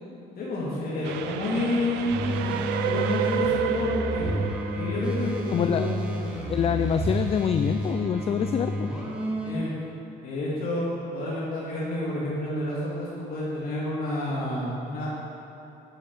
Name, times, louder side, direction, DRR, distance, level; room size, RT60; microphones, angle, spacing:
voice 1, 0.4-2.3 2.8-4.3 4.7-6.4 9.4-9.7 10.2-15.1, left 1 dB, 60° left, -6 dB, 2.2 m, -29 dB
Train, 1.0-6.3, right 10 dB, 85° right, 0.5 m, -31 dB
sound 1, 2.1-9.5, equal, 5° right, 2.1 m, -30 dB
voice 2, 5.5-5.9 6.5-8.9, left 8 dB, 35° left, 8 dB, 0.4 m, -25 dB
10.0 x 8.3 x 4.7 m, 2.8 s
cardioid pair, 110°, 17 cm